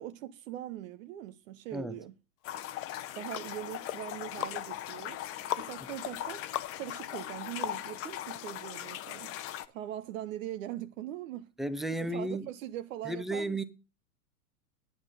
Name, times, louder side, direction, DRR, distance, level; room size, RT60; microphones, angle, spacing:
voice 1, 0.0-2.1 3.1-5.2 5.6-6.4 6.8-9.4 9.7-11.5 12.1-13.6, right 12 dB, 55° right, 0.8 m, -41 dB
sound 1, 2.4-9.7, left 12 dB, 30° left, 0.8 m, -40 dB
sound 2, 2.8-8.2 8.6-8.7, left 13 dB, 70° left, 0.7 m, -41 dB
voice 2, 11.6-12.5 13.0-13.6, right 1 dB, ahead, 0.5 m, -33 dB
10.0 x 8.8 x 5.1 m
hypercardioid pair, 105°, 47 cm